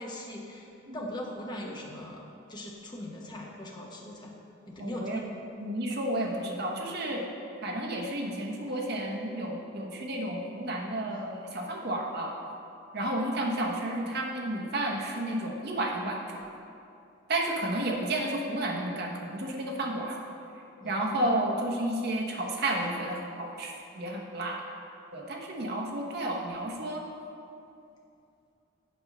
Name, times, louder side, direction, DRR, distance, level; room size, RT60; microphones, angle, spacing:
voice 1, 0.0-0.7 0.9-4.3 4.7-5.2 20.8-21.3, left 1 dB, 20° left, -1 dB, 0.8 m, -40 dB
voice 2, 4.8-5.2 5.6-7.2 7.6-12.4 12.9-16.4 17.3-20.2 20.8-24.6 25.1-27.0, right 1 dB, 50° right, -1 dB, 1.0 m, -31 dB
7.9 x 5.3 x 5.3 m, 2.7 s
head